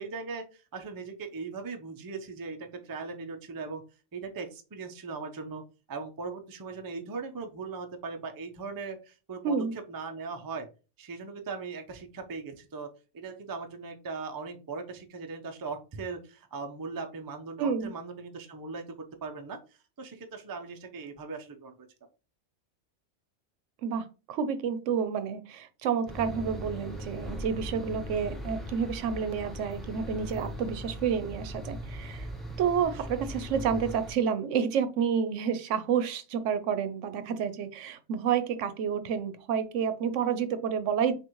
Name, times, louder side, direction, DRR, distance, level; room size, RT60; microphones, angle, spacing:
voice 1, 0.0-3.8 4.1-5.6 5.9-10.7 11.0-19.0 19.2-21.7, right 4 dB, 30° right, 5 dB, 0.4 m, -39 dB
voice 2, 17.6-17.9 23.8-32.3 32.6-41.1, right 7 dB, 80° right, 11 dB, 0.9 m, -29 dB
sound 1, 26.1-34.1, equal, ahead, 0.7 m, -39 dB
6.1 x 2.6 x 2.9 m, 0.32 s
omnidirectional pair, 1.3 m